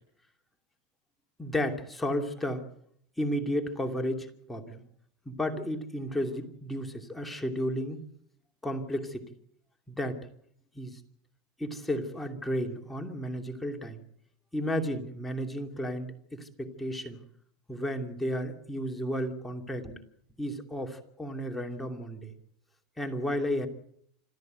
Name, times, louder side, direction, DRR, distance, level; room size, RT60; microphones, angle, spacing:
voice 1, 1.4-2.6 3.2-4.8 5.3-8.0 8.6-9.3 9.9-10.2 10.7-11.0 11.6-14.0 14.5-17.2 17.7-20.0 20.4-22.3 23.0-23.7, equal, 5° left, 3 dB, 2.7 m, -33 dB
27.0 x 13.0 x 8.0 m, 0.69 s
supercardioid pair, 130°, 2 cm